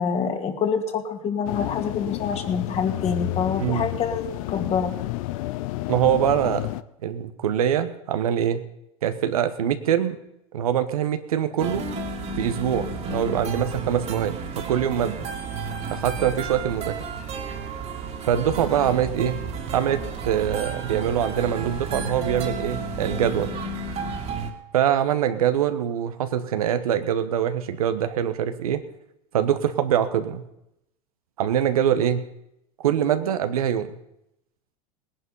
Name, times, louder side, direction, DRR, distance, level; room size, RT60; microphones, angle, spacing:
voice 1, 0.0-4.9, left 6 dB, 35° left, 5 dB, 2.3 m, -26 dB
sound 1, 1.4-6.8, left 17 dB, 70° left, 0.7 m, -30 dB
voice 2, 5.9-6.7 7.0-8.6 9.0-10.2 10.5-11.8 12.4-15.2 15.9-17.0 18.2-19.4 19.7-20.0 20.2-23.6 24.7-28.8 29.3-30.4 31.4-32.2 32.8-33.9, right 9 dB, 90° right, 9 dB, 1.2 m, -23 dB
sound 2, 11.6-24.5, right 4 dB, 35° right, 2.4 m, -32 dB
18.5 x 10.5 x 5.5 m, 0.85 s
hypercardioid pair, 105°, 18 cm